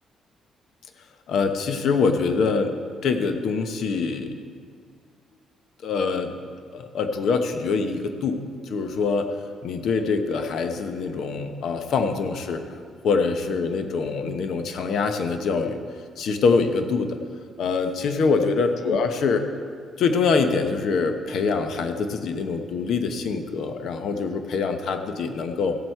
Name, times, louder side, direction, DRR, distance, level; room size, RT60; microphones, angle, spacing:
voice 1, 1.3-2.8 3.0-4.4 5.8-6.3 6.7-9.3 9.6-12.6 13.0-15.8 16.2-17.2 17.6-19.4 20.0-25.7, left 4 dB, 70° left, 7 dB, 1.0 m, -24 dB
15.0 x 7.9 x 4.5 m, 2.1 s
cardioid pair, 90°, 0 cm